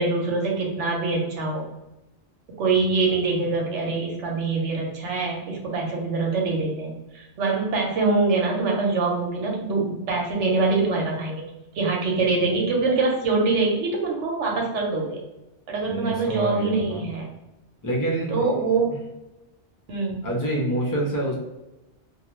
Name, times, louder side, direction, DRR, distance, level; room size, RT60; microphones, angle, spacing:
voice 1, 0.0-1.7 2.6-11.5 11.7-15.2 15.7-17.3 18.3-18.9 19.9-20.2, right 3 dB, 85° right, -1 dB, 1.1 m, -24 dB
voice 2, 2.8-3.2 12.4-12.6 15.9-17.0 17.8-18.4 20.2-21.3, right 1 dB, 25° left, -2 dB, 0.5 m, -27 dB
2.4 x 2.2 x 3.0 m, 0.97 s
omnidirectional pair, 1.2 m